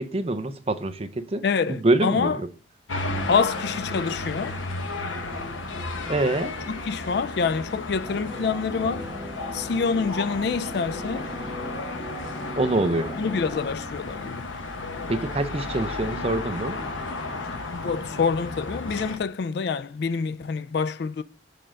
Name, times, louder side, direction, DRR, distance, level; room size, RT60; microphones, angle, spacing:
voice 1, 0.0-1.4 1.7-2.5 6.1-6.6 12.6-13.2 15.1-16.8, right 2 dB, 30° right, 0.5 m, -25 dB
voice 2, 1.4-2.4 3.3-4.6 6.7-9.1 9.5-11.3 13.2-14.5 17.7-21.2, left 5 dB, 55° left, 0.3 m, -26 dB
sound 1, 2.9-19.2, left 2 dB, 85° left, 0.9 m, -33 dB
sound 2, 8.0-13.7, right 1 dB, ahead, 0.9 m, -39 dB
6.7 x 3.7 x 5.1 m
head